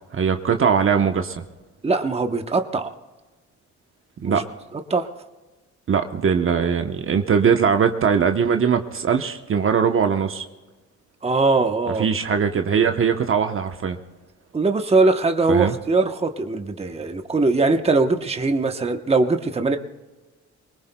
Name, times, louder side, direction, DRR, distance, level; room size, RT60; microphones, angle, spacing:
voice 1, 0.1-1.4 4.2-4.4 5.9-10.5 12.0-14.0 15.5-15.8, right 6 dB, 45° right, 6 dB, 1.0 m, -20 dB
voice 2, 1.8-2.9 4.2-4.4 4.7-5.1 11.2-12.4 14.5-19.8, right 3 dB, 20° right, 6 dB, 1.0 m, -21 dB
23.0 x 20.0 x 2.3 m, 1.2 s
cardioid pair, 90°, 30 cm